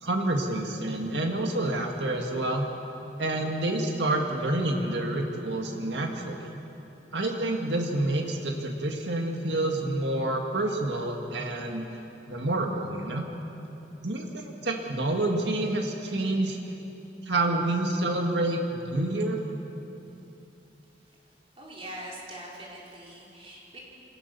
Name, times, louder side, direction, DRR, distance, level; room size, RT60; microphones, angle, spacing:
voice 1, 0.0-2.7 3.2-6.5 7.1-11.9 12.3-13.2 14.0-16.6 17.2-19.4, right 2 dB, 80° right, 2 dB, 1.9 m, -28 dB
voice 2, 21.6-23.8, right 1 dB, 35° right, -4 dB, 4.7 m, -42 dB
25.0 x 18.5 x 6.9 m, 3.0 s
head